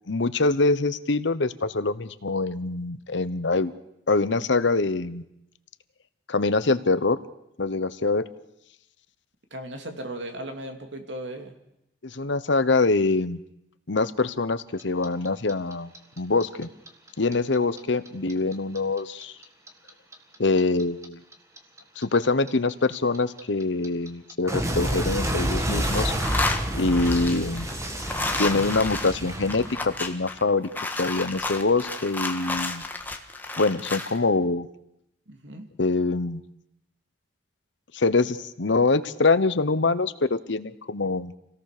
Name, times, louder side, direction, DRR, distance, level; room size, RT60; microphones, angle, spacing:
voice 1, 0.1-3.7 4.1-5.2 6.3-7.2 7.6-8.2 12.0-13.4 13.9-15.9 16.2-16.7 17.2-19.3 20.4-21.2 22.0-26.1 26.7-27.7 28.4-30.7 31.0-32.8 33.6-34.7 35.8-36.4 37.9-41.3, left 3 dB, 70° left, 14 dB, 1.0 m, -24 dB
voice 2, 9.5-11.5 35.3-35.7, right 1 dB, 70° right, 5 dB, 2.7 m, -36 dB
Clock, 14.8-17.8 18.1-21.0 21.3-30.2, right 1 dB, 15° right, 1.8 m, -29 dB
sound 1, 24.9-25.4 25.7-34.2, left 2 dB, 10° left, 1.6 m, -31 dB
27.0 x 17.5 x 6.7 m, 0.83 s
head